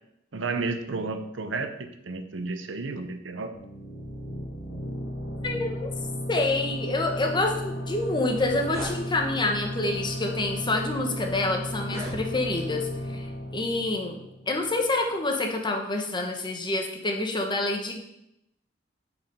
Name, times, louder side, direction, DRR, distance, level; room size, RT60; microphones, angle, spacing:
voice 1, 0.3-3.5, right 3 dB, 70° right, 8 dB, 0.8 m, -32 dB
sound 1, 3.5-14.9, left 1 dB, 80° left, 1.7 m, -35 dB
voice 2, 5.4-5.9 6.3-14.2 14.5-18.0, left 2 dB, 25° left, 2 dB, 1.1 m, -27 dB
sound 2, 7.9-8.0 8.2-9.0 9.8-10.1 10.8-10.9 11.7-12.7, equal, 15° right, 2.1 m, -39 dB
8.6 x 5.0 x 5.3 m, 0.81 s
head